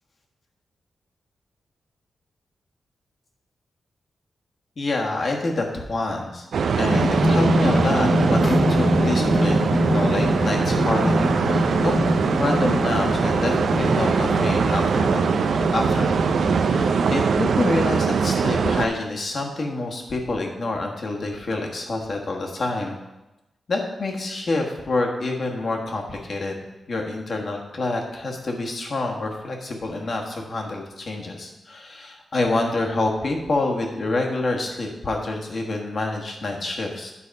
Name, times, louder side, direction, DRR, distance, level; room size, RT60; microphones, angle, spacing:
voice 1, 4.8-6.5 6.8-12.1 12.4-15.4 15.7-23.0 23.7-26.6 26.9-37.1, left 2 dB, 50° left, 1 dB, 1.4 m, -27 dB
sound 1, 6.5-18.9, right 5 dB, 75° right, 0.4 m, -22 dB
sound 2, 6.9-17.2, left 1 dB, 25° left, 0.9 m, -24 dB
9.8 x 4.1 x 5.2 m, 0.99 s
wide cardioid pair, 120°, 0 cm